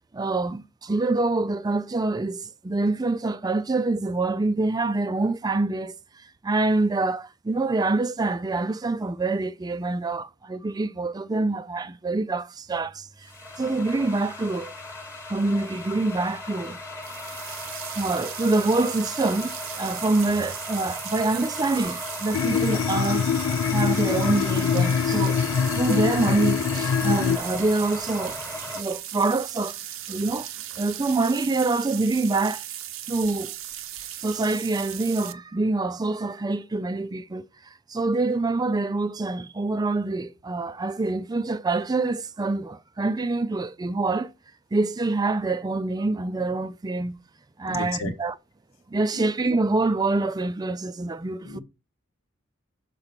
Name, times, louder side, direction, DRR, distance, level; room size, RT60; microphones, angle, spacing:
voice 1, 0.1-5.9 6.4-13.3 13.6-14.7 15.3-16.8 18.0-23.4 23.7-25.4 25.7-28.4 28.7-29.8 30.1-30.5 30.8-32.6 33.1-33.5 34.2-37.5 37.9-44.3 44.7-47.2 47.6-48.4 48.9-51.6, right 3 dB, 20° right, 0.3 m, -26 dB
sound 1, 12.7-28.8, left 2 dB, 10° left, 1.2 m, -37 dB
sound 2, 17.0-35.3, right 12 dB, 70° right, 0.6 m, -37 dB
sound 3, 22.3-27.4, left 7 dB, 65° left, 0.3 m, -24 dB
voice 2, 47.7-48.1 49.1-49.3 51.4-51.6, left 4 dB, 85° left, 1.3 m, -34 dB
6.5 x 4.1 x 5.8 m
head